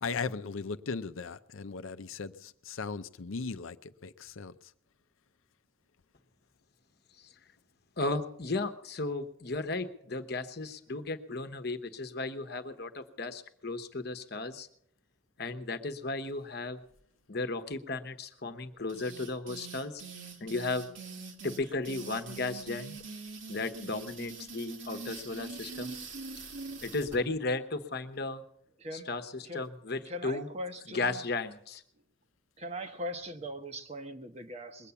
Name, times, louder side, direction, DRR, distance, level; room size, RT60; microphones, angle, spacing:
voice 1, 0.0-4.5, left 4 dB, 75° left, 10 dB, 0.6 m, -37 dB
voice 2, 8.0-14.7 15.4-16.8 17.3-20.0 20.4-20.9 21.4-22.9 23.5-25.9 26.8-28.4 28.9-30.5 30.9-31.8, left 3 dB, 50° left, 9 dB, 1.0 m, -35 dB
sound 1, 18.9-27.2, right 4 dB, 60° right, 1.8 m, -43 dB
voice 3, 30.0-31.2 32.6-34.9, equal, 30° right, 7 dB, 1.0 m, -40 dB
21.5 x 8.4 x 7.0 m, 0.66 s
head